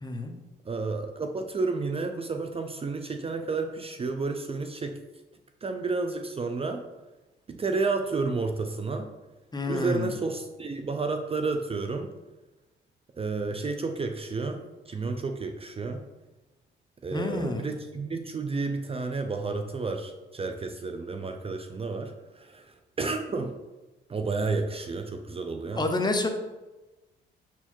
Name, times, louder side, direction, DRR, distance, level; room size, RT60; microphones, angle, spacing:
voice 1, 0.0-0.3 9.5-10.2 17.1-17.7 25.7-26.3, left 2 dB, 20° left, 5 dB, 1.0 m, -28 dB
voice 2, 0.6-5.0 5.6-6.8 7.5-9.1 9.7-12.1 13.2-16.1 17.0-23.6 24.1-25.8, right 3 dB, 30° right, 5 dB, 0.6 m, -31 dB
6.8 x 4.6 x 4.4 m, 1.1 s
cardioid pair, 90°, 20 cm